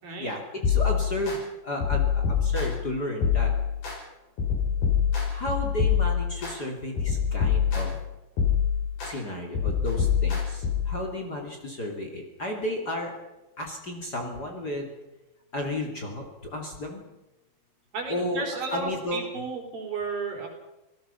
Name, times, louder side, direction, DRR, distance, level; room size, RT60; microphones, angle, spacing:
voice 1, 0.2-3.5 5.2-8.0 9.0-13.1 13.6-14.9 15.5-17.1 18.1-18.4 18.7-19.2, left 1 dB, 30° left, 2 dB, 2.9 m, -33 dB
sound 1, 0.6-1.4 1.8-2.9 3.2-4.0 4.4-6.5 7.0-8.0 8.4-9.1 9.5-11.0, left 7 dB, 75° left, 8.3 m, -25 dB
voice 2, 17.9-20.5, right 4 dB, 75° right, 1 dB, 6.2 m, -33 dB
27.5 x 18.0 x 5.7 m, 1.0 s
omnidirectional pair, 4.2 m